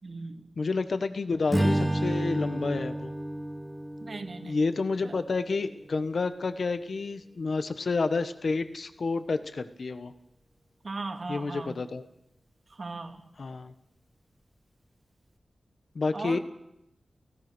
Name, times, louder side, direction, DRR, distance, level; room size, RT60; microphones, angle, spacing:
voice 1, 0.0-0.5 4.0-4.6 5.0-5.2 10.8-11.7 12.7-13.2 16.1-16.4, right 3 dB, 45° right, 5 dB, 2.5 m, -38 dB
voice 2, 0.6-3.1 4.4-10.1 11.3-12.0 13.4-13.7 15.9-16.4, left 4 dB, 55° left, 10 dB, 1.3 m, -29 dB
Strum, 1.5-5.9, right 1 dB, 5° right, 1.5 m, -31 dB
30.0 x 17.5 x 6.2 m, 0.82 s
wide cardioid pair, 130°, 0 cm